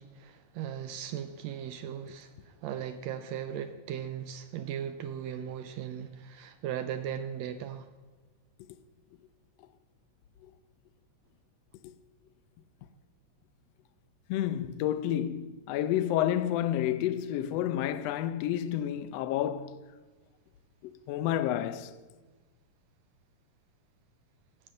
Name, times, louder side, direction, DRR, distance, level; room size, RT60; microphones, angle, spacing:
voice 1, 0.0-7.9, right 9 dB, 85° right, 1.5 m, -38 dB
voice 2, 14.3-19.8 20.8-21.9, left 11 dB, 85° left, 1.4 m, -30 dB
15.5 x 5.5 x 6.5 m
omnidirectional pair, 3.6 m